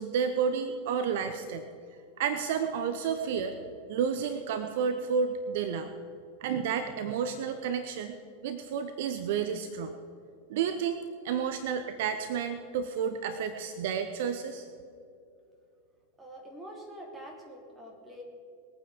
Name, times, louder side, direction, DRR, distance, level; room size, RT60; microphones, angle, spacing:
voice 1, 0.0-1.7 2.2-3.6 3.9-5.9 6.4-8.2 8.4-9.9 10.5-11.0 11.2-14.7, right 7 dB, 55° right, 8 dB, 0.7 m, -31 dB
voice 2, 16.2-18.2, equal, 15° right, -1 dB, 3.3 m, -45 dB
20.5 x 8.9 x 5.0 m, 2.5 s
figure-of-eight pair, 90°, 0 cm